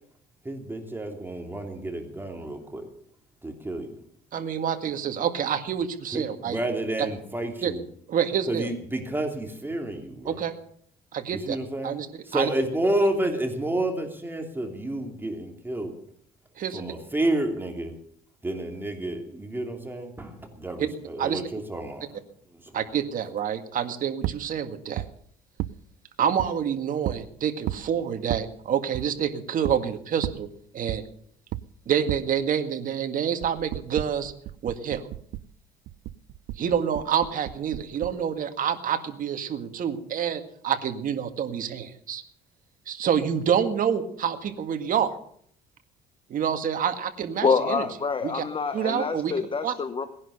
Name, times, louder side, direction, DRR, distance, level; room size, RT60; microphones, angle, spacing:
voice 1, 0.4-2.9 3.4-3.9 6.1-7.8 8.5-10.4 11.3-11.9 12.3-15.9 16.7-17.9 18.4-22.1 22.6-22.7, right 1 dB, 10° right, 3 dB, 2.9 m, -30 dB
voice 2, 4.3-6.6 7.6-7.7 8.1-8.7 10.3-10.5 11.1-11.6 11.8-12.1 12.3-12.5 16.6-16.9 20.8-20.9 21.2-21.4 22.7-25.0 26.2-30.5 30.7-31.0 31.9-34.3 34.6-35.0 36.6-42.2 42.9-45.2 46.3-47.9 48.2-48.4 48.7-49.3 49.6-49.7, right 8 dB, 55° right, 8 dB, 1.9 m, -27 dB
sound 1, 24.2-24.4 25.0-25.1 25.6-25.8 26.4-26.5 27.0-27.2 27.7-27.9 28.3-28.5 28.9-29.1 29.6-29.8 30.2-30.4 30.9-31.1 31.5-31.6 32.1-32.2 33.4-35.5 35.9-38.2, right 14 dB, 75° right, 0.6 m, -33 dB
voice 3, 47.4-50.1, left 5 dB, 30° left, 9 dB, 1.1 m, -26 dB
18.5 x 11.0 x 6.7 m, 0.63 s
cardioid pair, 110°, 17 cm